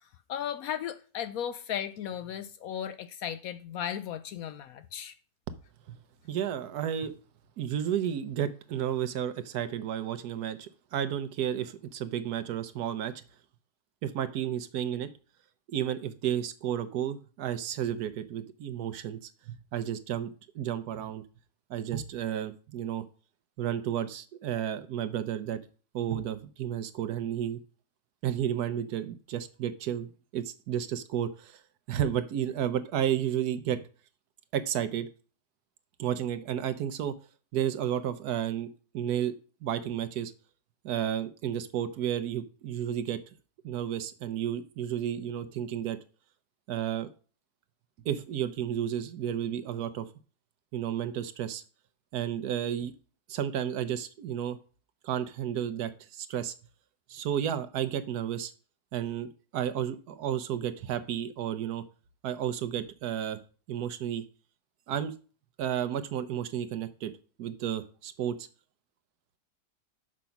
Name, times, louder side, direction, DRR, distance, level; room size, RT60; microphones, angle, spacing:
voice 1, 0.0-5.2, left 9 dB, 70° left, 0.9 m, -36 dB
voice 2, 6.2-7.1 7.6-13.1 14.0-15.1 15.7-21.2 21.7-23.0 23.6-25.6 25.9-27.6 28.2-31.6 31.9-33.8 34.5-35.1 36.0-37.1 37.5-38.7 38.9-39.3 39.6-40.3 40.8-43.2 43.6-46.0 46.7-47.1 48.0-50.1 50.7-51.6 52.1-52.9 53.3-54.6 55.0-56.5 57.1-58.5 58.9-61.8 62.2-63.4 63.7-64.2 64.9-65.1 65.6-67.1 67.4-68.5, right 10 dB, 75° right, 1.2 m, -32 dB
6.2 x 5.2 x 5.8 m
omnidirectional pair, 1.8 m